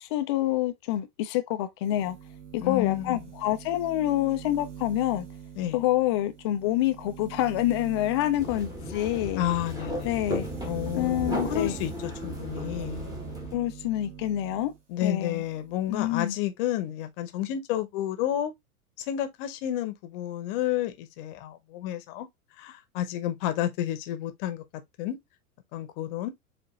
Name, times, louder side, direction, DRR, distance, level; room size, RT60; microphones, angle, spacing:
voice 1, 0.0-2.2 2.5-5.3 5.7-9.4 10.0-10.5 10.9-11.7 13.5-14.7 15.0-15.4 15.9-16.4, left 14 dB, 20° left, 0.3 m, -27 dB
sound 1, 1.8-14.8 15.1-16.1, right 7 dB, 55° right, 1.6 m, -43 dB
voice 2, 2.6-3.2 5.6-5.8 9.3-13.1 14.9-18.5 19.0-22.3 22.6-24.6 25.0-25.2 25.7-26.3, left 12 dB, 40° left, 0.8 m, -31 dB
sound 2, 8.4-13.6, left 1 dB, 10° right, 1.1 m, -35 dB
7.3 x 2.5 x 2.3 m
figure-of-eight pair, 95°, 44 cm